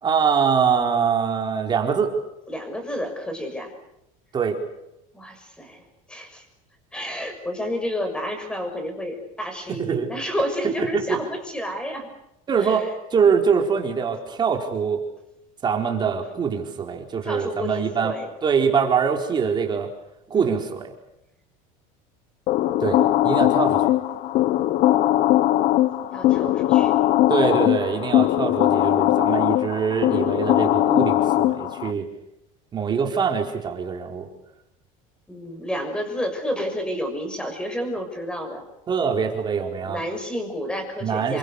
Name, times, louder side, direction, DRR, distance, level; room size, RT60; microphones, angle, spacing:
voice 1, 0.0-2.1 4.3-4.6 9.7-10.1 10.8-11.2 12.5-12.8 13.1-15.0 15.6-18.1 18.4-19.9 20.3-20.9 22.8-23.9 27.3-32.1 32.7-34.3 38.9-40.0 41.0-41.4, right 6 dB, 25° right, 3 dB, 4.4 m, -23 dB
voice 2, 2.5-3.7 5.1-5.8 6.1-6.4 6.9-12.1 12.6-12.9 17.2-18.3 20.3-20.6 26.1-26.9 35.3-38.6 39.8-41.4, equal, 5° left, 6 dB, 6.6 m, -30 dB
sound 1, 22.5-31.9, left 14 dB, 50° left, 1.1 m, -20 dB
28.5 x 24.0 x 6.7 m, 0.85 s
cardioid pair, 145°, 17 cm